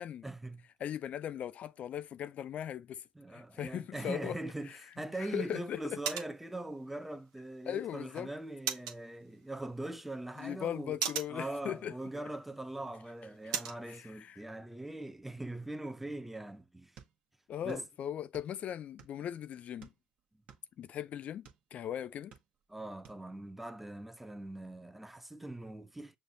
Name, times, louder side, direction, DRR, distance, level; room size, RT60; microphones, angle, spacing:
voice 1, 0.2-0.6 3.1-11.0 11.3-16.9 17.6-17.8 22.7-26.2, right 1 dB, 5° right, 0.6 m, -41 dB
voice 2, 0.8-3.0 3.3-4.4 5.2-6.0 7.7-8.3 10.4-11.9 13.8-14.4 17.5-19.9 20.8-22.3, left 10 dB, 50° left, 0.4 m, -39 dB
sound 1, 4.4-13.9, right 8 dB, 85° right, 0.8 m, -43 dB
sound 2, 17.0-17.9 18.2-19.3 19.8-21.7 22.1-22.7 23.0-23.2, right 8 dB, 55° right, 1.2 m, -56 dB
6.3 x 2.3 x 2.7 m
hypercardioid pair, 65°, 3 cm